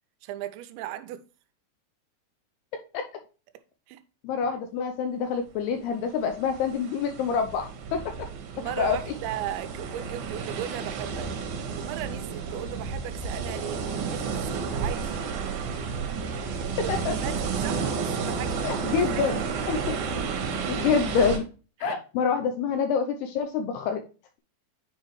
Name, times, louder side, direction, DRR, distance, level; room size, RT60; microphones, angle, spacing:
voice 1, 0.2-1.2 3.9-4.0 4.5-4.6 8.5-11.3 11.8-13.8 14.1-15.1 16.6-18.6 19.0-19.5 20.5-20.7 21.8-22.0, right 12 dB, 85° right, 2.8 m, -37 dB
voice 2, 4.2-8.0 8.8-9.0 16.9-17.1 18.6-19.4 19.7-19.8 20.7-21.4 21.8-24.0, left 6 dB, 80° left, 2.4 m, -26 dB
sound 1, 6.0-21.4, right 5 dB, 65° right, 2.8 m, -31 dB
9.8 x 4.6 x 3.1 m
omnidirectional pair, 5.3 m